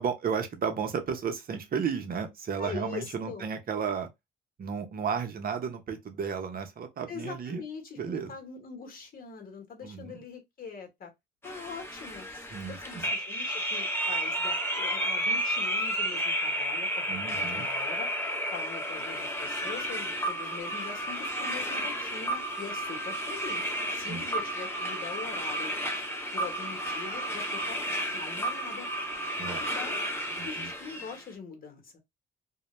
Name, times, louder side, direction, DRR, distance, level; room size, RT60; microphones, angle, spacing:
voice 1, 0.0-4.1 4.6-7.6 8.0-8.4 9.8-10.2 12.5-13.1 17.1-17.7 24.1-24.2 29.4-29.7 30.4-30.7, right 6 dB, 50° right, 0.7 m, -33 dB
voice 2, 2.6-3.4 7.1-11.1 11.4-12.3 12.7-18.1 18.5-25.8 26.3-27.9 28.1-28.9 29.6-30.0 30.4-32.0, left 5 dB, 50° left, 1.1 m, -42 dB
sound 1, 11.4-31.2, right 1 dB, 10° left, 0.7 m, -32 dB
2.2 x 2.1 x 3.0 m
cardioid pair, 90°, 20 cm